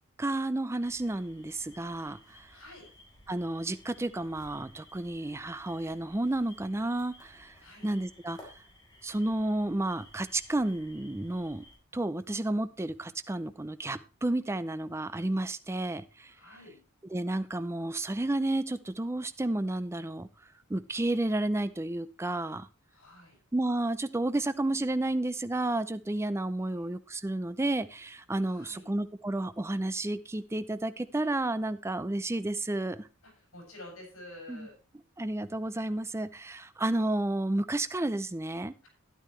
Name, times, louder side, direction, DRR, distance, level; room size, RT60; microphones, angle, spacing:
voice 1, 0.2-2.2 3.3-7.5 7.8-8.4 9.0-11.6 11.9-16.3 17.1-20.3 20.7-22.7 23.5-33.1 34.5-34.7 35.2-38.7, right 1 dB, 15° right, 13 dB, 0.5 m, -31 dB
sound 1, 0.8-11.8, left 1 dB, 20° left, 4.1 m, -56 dB
voice 2, 2.5-2.9 7.6-7.9 16.3-16.8 22.9-23.4 26.6-26.8 28.4-28.9 33.2-34.7, left 1 dB, 85° left, 1 dB, 6.8 m, -49 dB
12.0 x 10.5 x 3.2 m, 0.32 s
head